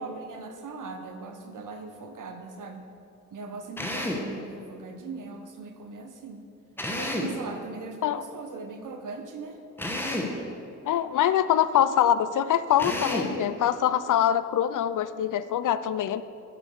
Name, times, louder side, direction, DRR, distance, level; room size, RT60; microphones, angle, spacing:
voice 1, 0.0-2.8 3.3-6.5 6.9-9.6, right 4 dB, 85° right, 6 dB, 1.2 m, -40 dB
Drill, 3.8-4.3 6.8-7.4 9.8-10.4 12.8-13.4, left 1 dB, 5° left, 1.2 m, -30 dB
voice 2, 10.9-16.2, left 10 dB, 80° left, 14 dB, 0.5 m, -24 dB
9.7 x 8.6 x 6.7 m, 2.6 s
wide cardioid pair, 145°, 30 cm